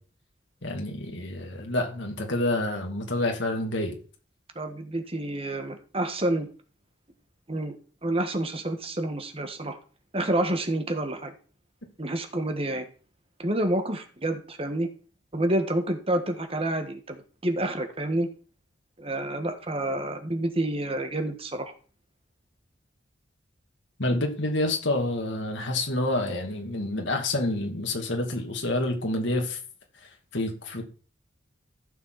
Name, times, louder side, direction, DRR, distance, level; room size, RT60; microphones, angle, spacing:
voice 1, 0.6-4.0 24.0-29.6 30.0-30.8, left 1 dB, 70° left, 2.6 m, -28 dB
voice 2, 4.5-6.5 7.5-7.7 8.0-9.8 10.1-11.3 12.0-12.9 13.4-14.9 15.3-18.3 19.0-21.7, right 1 dB, 30° right, 1.4 m, -28 dB
15.0 x 6.8 x 4.1 m
head